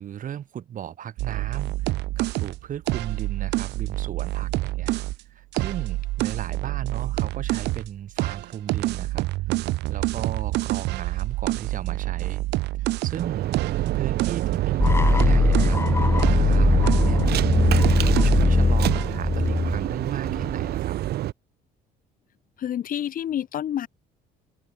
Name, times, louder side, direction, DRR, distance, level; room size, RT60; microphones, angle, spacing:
voice 1, 0.0-4.9 5.3-9.3 9.5-12.5 12.8-13.6 13.9-21.0, right 10 dB, 50° right, 3.2 m, -36 dB
sound 1, 1.2-5.2 5.5-7.9 8.2-15.9 16.2-18.6 18.8-19.2, right 19 dB, 85° right, 2.5 m, -27 dB
sound 2, 13.2-21.3, right 14 dB, 70° right, 3.2 m, -27 dB
sound 3, 14.8-20.7, left 3 dB, 15° left, 1.1 m, -20 dB
voice 2, 22.6-23.9, left 10 dB, 55° left, 2.8 m, -28 dB
open air
cardioid pair, 110°, 17 cm